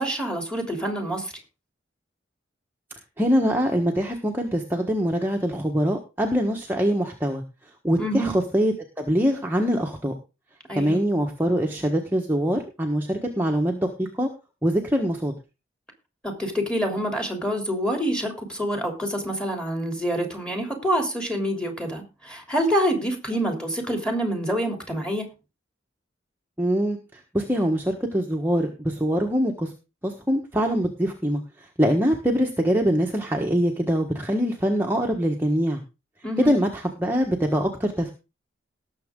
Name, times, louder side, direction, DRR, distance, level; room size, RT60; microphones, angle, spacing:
voice 1, 0.0-1.3 8.0-8.4 10.7-11.0 16.2-25.3 36.2-36.5, equal, 5° left, 3 dB, 3.2 m, -26 dB
voice 2, 3.2-7.4 7.8-10.1 10.7-14.3 14.6-15.3 23.3-23.6 26.6-29.7 30.0-31.4 31.8-35.8 36.4-38.1, equal, 10° right, 1 dB, 1.4 m, -23 dB
18.5 x 7.2 x 3.8 m, 0.29 s
head